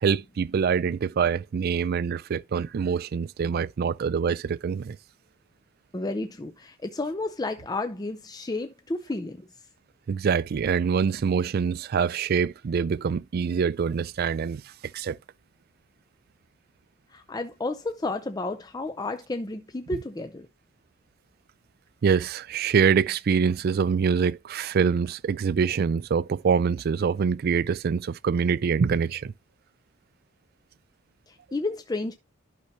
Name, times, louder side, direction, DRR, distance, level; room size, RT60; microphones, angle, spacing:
voice 1, 0.0-5.0 10.1-15.2 22.0-29.3, right 6 dB, 50° right, 0.3 m, -25 dB
voice 2, 5.9-9.5 17.1-20.5 31.3-32.1, left 2 dB, 20° left, 0.5 m, -32 dB
11.5 x 5.8 x 2.7 m
head